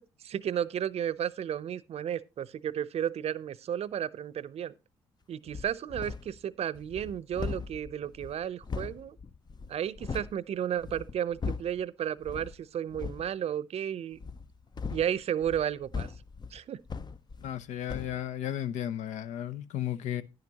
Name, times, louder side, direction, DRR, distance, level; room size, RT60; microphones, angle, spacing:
voice 1, 0.2-4.7 5.3-9.2 9.7-14.2 14.9-16.1 16.5-16.8, right 9 dB, 50° right, 0.6 m, -33 dB
sound 1, 5.5-6.4 6.7-10.4 10.8-11.8 12.2-12.6 12.9-13.3 14.2-17.6 17.9-18.2, left 5 dB, 35° left, 0.7 m, -39 dB
voice 2, 17.4-20.2, left 11 dB, 65° left, 0.7 m, -34 dB
10.5 x 10.5 x 2.9 m
hypercardioid pair, 50°, 13 cm